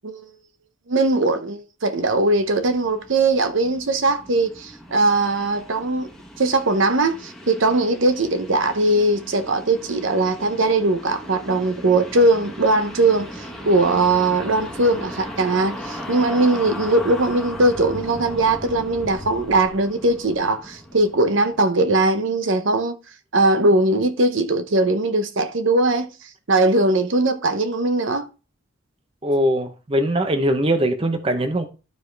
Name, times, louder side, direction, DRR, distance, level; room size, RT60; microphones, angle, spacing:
voice 1, 0.9-6.1 6.4-23.0 23.3-26.1 26.5-28.3, right 2 dB, 60° right, 0.8 m, -20 dB
sound 1, 2.0-21.6, equal, ahead, 1.2 m, -37 dB
voice 2, 29.2-31.7, right 1 dB, 25° right, 0.8 m, -21 dB
12.0 x 4.9 x 3.3 m
head